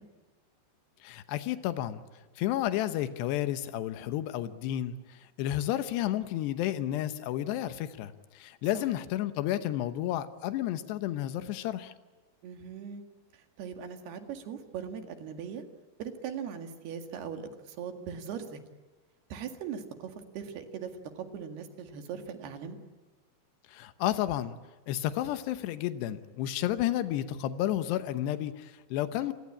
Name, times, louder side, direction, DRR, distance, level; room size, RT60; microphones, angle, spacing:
voice 1, 1.0-2.0 2.4-11.9 23.7-24.6 24.9-29.3, left 13 dB, 90° left, 11 dB, 3.2 m, -31 dB
voice 2, 12.4-13.0 13.3-15.6 16.0-18.6 19.3-20.9 21.2-22.8, right 7 dB, 75° right, 6 dB, 4.0 m, -40 dB
28.0 x 22.0 x 8.7 m, 1.2 s
omnidirectional pair, 4.7 m